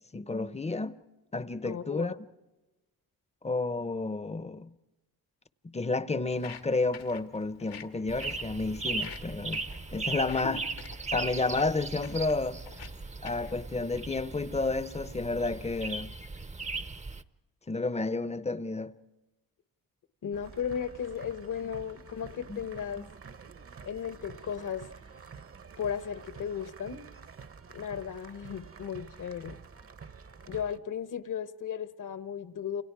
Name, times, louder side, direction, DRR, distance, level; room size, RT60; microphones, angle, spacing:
voice 1, 0.1-1.0 1.3-2.1 3.4-4.7 5.7-9.6 9.9-10.6 11.1-12.6 13.2-16.1 17.7-18.9 22.5-22.6 23.0-23.1, left 3 dB, 20° left, 0.8 m, -31 dB
voice 2, 1.6-2.2 10.4-10.6 20.2-23.0 23.8-24.9 25.8-27.0 27.7-29.6 30.5-32.8, left 8 dB, 55° left, 1.3 m, -35 dB
Walk footsteps, 6.2-13.6, left 7 dB, 80° left, 1.9 m, -50 dB
sound 1, 8.1-17.2, right 3 dB, 20° right, 0.8 m, -38 dB
sound 2, 20.3-30.8, right 5 dB, 40° right, 1.0 m, -49 dB
30.0 x 28.0 x 4.8 m
cardioid pair, 80°, 36 cm